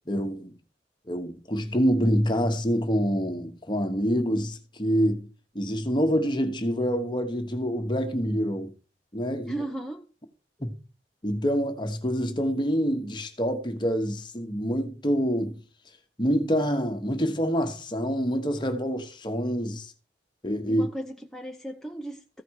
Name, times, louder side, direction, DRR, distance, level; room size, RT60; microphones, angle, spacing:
voice 1, 0.1-0.5 1.1-5.3 5.5-8.7 9.1-9.6 10.6-10.7 11.2-15.6 16.2-19.9 20.4-20.9, equal, 25° left, 1.2 m, -26 dB
voice 2, 9.4-10.1 20.7-22.4, right 1 dB, 5° left, 0.6 m, -36 dB
14.5 x 5.1 x 4.7 m
head